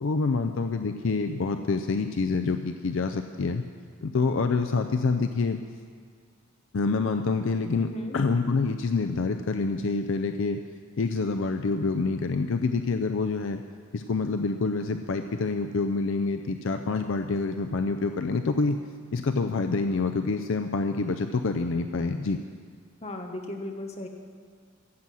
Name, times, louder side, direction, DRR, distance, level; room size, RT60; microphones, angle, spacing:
voice 1, 0.0-3.6 4.0-5.6 6.7-7.9 8.1-10.6 11.0-13.6 13.9-18.8 19.1-22.4, left 4 dB, 60° left, 6 dB, 0.5 m, -27 dB
voice 2, 7.8-8.2 23.0-24.1, left 1 dB, 30° left, 3 dB, 1.1 m, -36 dB
15.0 x 7.5 x 6.2 m, 2.1 s
head